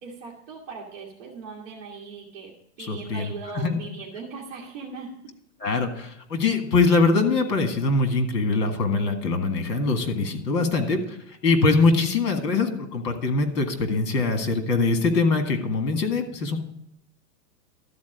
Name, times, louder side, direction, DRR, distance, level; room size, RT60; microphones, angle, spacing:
voice 1, 0.0-2.5 2.8-5.3, right 4 dB, 25° right, -6 dB, 1.6 m, -39 dB
voice 2, 2.9-3.8 5.6-16.6, left 3 dB, 70° left, 6 dB, 2.0 m, -23 dB
12.5 x 4.4 x 8.0 m, 0.77 s
hypercardioid pair, 175°, 50 cm